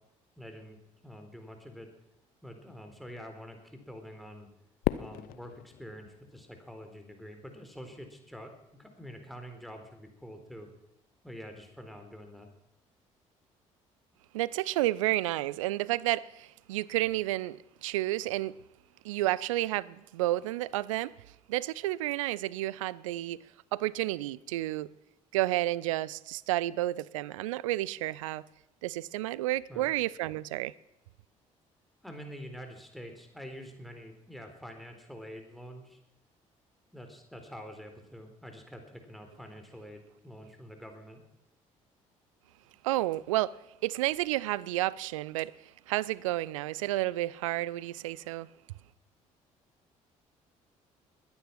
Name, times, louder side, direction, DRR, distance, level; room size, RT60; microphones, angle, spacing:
voice 1, 0.4-0.8 1.0-1.9 2.4-4.5 5.0-10.7 11.2-12.5 29.7-29.9 32.0-36.0 36.9-41.2, equal, ahead, 4.1 m, -46 dB
Fireworks, 4.8-7.2, left 16 dB, 60° left, 0.6 m, -36 dB
voice 2, 14.3-18.5 19.0-21.1 21.5-23.4 23.7-24.9 25.3-28.4 28.8-30.7 42.8-43.6 43.8-45.5 45.9-48.5, right 16 dB, 75° right, 0.5 m, -31 dB
21.0 x 9.8 x 6.0 m
figure-of-eight pair, 50°, 17 cm